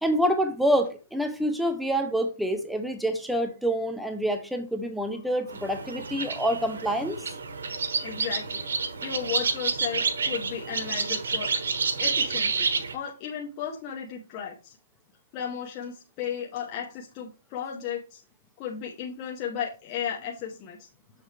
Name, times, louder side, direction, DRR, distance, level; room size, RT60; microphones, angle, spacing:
voice 1, 0.0-7.2, equal, ahead, 6 dB, 0.5 m, -27 dB
sound 1, 5.5-12.9, right 4 dB, 90° right, 1.3 m, -29 dB
voice 2, 8.0-8.7 9.0-11.5 12.0-12.7 12.9-14.8 15.3-18.2 18.6-20.9, left 8 dB, 25° left, -1 dB, 0.8 m, -34 dB
6.8 x 6.7 x 3.2 m, 0.32 s
hypercardioid pair, 170°, 0 cm